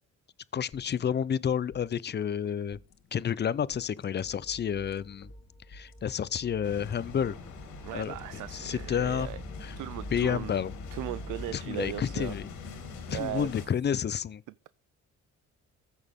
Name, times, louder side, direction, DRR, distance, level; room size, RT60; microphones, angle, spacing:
voice 1, 0.5-2.8 3.1-5.3 5.7-7.4 7.9-8.1 8.5-9.3 9.6-9.7 10.1-10.7 11.5-12.5 13.1-14.4, left 8 dB, 35° left, 0.5 m, -30 dB
sound 1, 0.7-8.7, left 5 dB, 60° left, 1.4 m, -57 dB
sound 2, 4.2-12.4, equal, 20° left, 2.3 m, -46 dB
sound 3, 6.6-13.7, left 5 dB, 90° left, 2.7 m, -43 dB
voice 2, 7.8-9.4 9.8-10.6 10.9-12.4 13.1-13.5, right 17 dB, 85° right, 0.5 m, -37 dB
14.0 x 6.4 x 3.6 m
cardioid pair, 90°, 30 cm